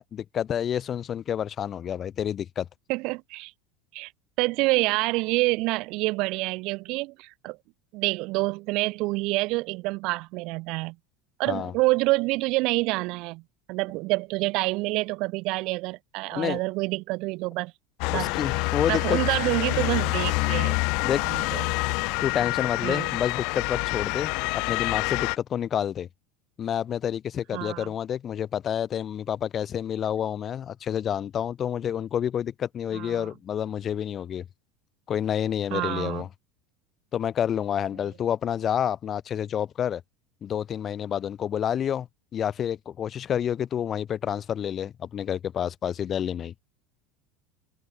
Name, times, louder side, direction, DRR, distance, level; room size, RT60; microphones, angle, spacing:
voice 1, 0.0-2.7 11.5-11.7 16.3-16.6 18.1-19.2 21.0-21.2 22.2-26.1 26.6-34.5 35.1-36.3 37.1-40.0 40.4-42.1 42.3-46.5, left 9 dB, 40° left, 3.4 m, -29 dB
voice 2, 2.9-3.5 3.9-4.1 4.4-7.6 7.9-11.0 11.4-13.4 13.7-17.7 18.1-18.3 18.9-20.8 21.2-21.8 22.8-23.1 27.5-27.9 32.9-33.3 35.7-36.2, right 23 dB, 60° right, 3.4 m, -27 dB
Motor vehicle (road) / Siren, 18.0-25.4, left 31 dB, 65° left, 1.0 m, -27 dB
hypercardioid pair, 85°, 0 cm